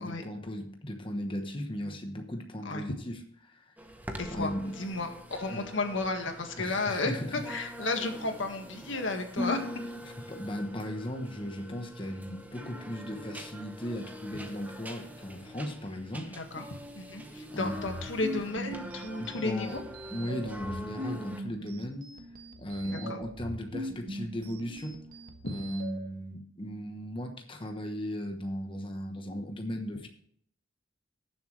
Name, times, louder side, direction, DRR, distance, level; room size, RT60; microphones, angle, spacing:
voice 1, 0.0-3.7 4.3-4.7 5.5-5.7 6.6-7.5 10.3-16.4 17.5-17.8 19.2-19.8 20.1-22.1 22.6-25.0 25.5-30.1, equal, 25° left, 4 dB, 1.1 m, -37 dB
sound 1, 3.8-21.4, left 1 dB, 10° right, 1.0 m, -43 dB
voice 2, 4.2-9.7 16.3-16.7 17.0-19.8 22.8-23.2 25.4-25.6, left 2 dB, 85° left, 5 dB, 1.8 m, -33 dB
sound 2, 17.7-26.0, right 1 dB, 45° right, 1.3 m, -42 dB
18.5 x 7.3 x 3.3 m, 0.63 s
head